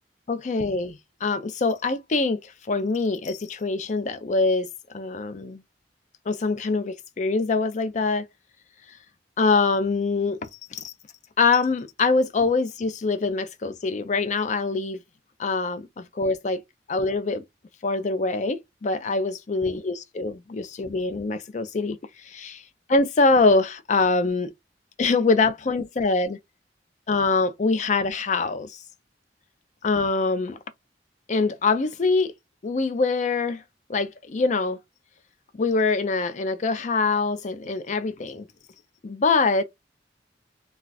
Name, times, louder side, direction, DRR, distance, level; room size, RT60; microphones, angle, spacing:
voice 1, 0.3-2.4 2.7-4.7 4.9-5.6 6.3-8.3 9.4-10.4 10.7-10.9 11.4-15.0 15.4-16.6 16.9-17.4 17.8-22.0 22.3-22.6 22.9-24.5 25.0-26.4 27.1-28.7 29.8-30.6 31.3-32.3 32.6-33.6 33.9-34.8 35.6-38.5 39.0-39.6, left 3 dB, 45° left, 0.4 m, -24 dB
2.3 x 2.3 x 3.9 m
head